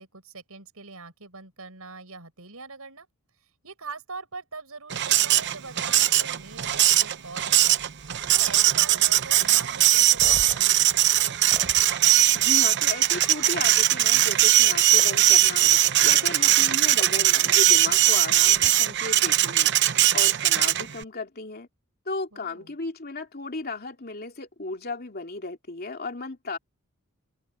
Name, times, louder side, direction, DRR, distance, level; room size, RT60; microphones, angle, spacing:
voice 1, 0.0-3.1 3.4-7.8 8.3-10.8 22.3-22.7, right 4 dB, 80° right, 5.6 m, -42 dB
Printer, 4.9-21.0, right 13 dB, 55° right, 0.8 m, -20 dB
sound 1, 10.1-11.8 13.2-13.3 15.0-15.1 17.0-17.1 18.5-18.7, equal, 5° left, 8.0 m, -41 dB
voice 2, 12.3-15.7 16.0-19.7 20.1-21.7 22.1-26.6, left 3 dB, 45° left, 2.8 m, -35 dB
open air
head